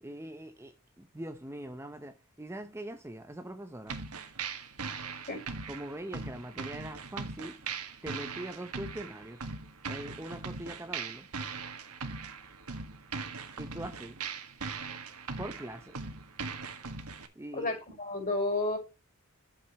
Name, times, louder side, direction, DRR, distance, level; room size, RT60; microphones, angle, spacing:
voice 1, 0.0-4.0 5.7-7.6 8.0-9.4 9.9-11.3 13.6-14.2 15.4-15.9 17.4-17.8, right 1 dB, 10° right, 0.7 m, -42 dB
sound 1, 3.9-17.3, right 5 dB, 85° right, 1.6 m, -40 dB
voice 2, 17.5-18.8, left 2 dB, 40° left, 5.2 m, -31 dB
11.5 x 7.5 x 3.1 m
head